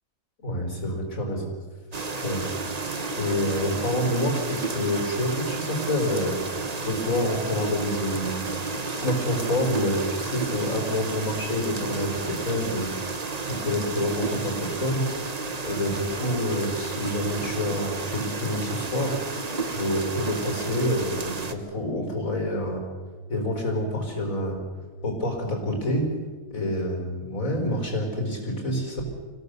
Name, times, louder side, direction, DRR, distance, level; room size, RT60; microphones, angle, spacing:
voice 1, 0.4-1.5 2.2-2.5 3.2-6.4 6.8-12.9 13.5-15.0 15.6-19.2 19.7-22.8 23.3-24.6 25.0-26.0 26.5-29.0, left 1 dB, 55° left, 2 dB, 5.0 m, -27 dB
sound 1, 1.9-21.5, right 4 dB, 30° right, 1.1 m, -32 dB
25.5 x 16.5 x 6.8 m, 1.4 s
omnidirectional pair, 1.7 m